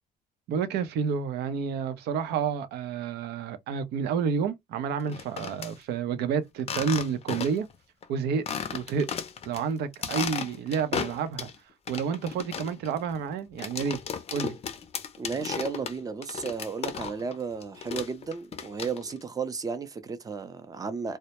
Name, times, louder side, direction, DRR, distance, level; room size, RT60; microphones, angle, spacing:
voice 1, 0.5-7.7 8.1-8.5 8.7-9.1 9.4-11.5 11.9-14.0 14.3-14.6, right 6 dB, 75° right, 0.6 m, -29 dB
sound 1, 5.0-5.7 6.6-7.7 8.0-8.1 8.5-9.6 9.9-11.6 11.9-17.4 17.6-19.2, left 7 dB, 35° left, 0.5 m, -35 dB
voice 2, 15.2-21.2, right 5 dB, 20° right, 0.5 m, -34 dB
2.2 x 2.0 x 2.8 m
cardioid pair, 110°, 17 cm